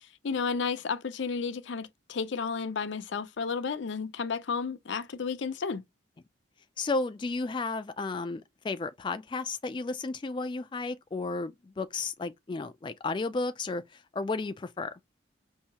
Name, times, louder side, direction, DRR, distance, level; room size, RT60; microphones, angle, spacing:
voice 1, 0.2-5.8, left 5 dB, 75° left, 0.5 m, -32 dB
voice 2, 6.8-14.9, left 3 dB, 25° left, 0.3 m, -33 dB
5.5 x 2.7 x 2.8 m
head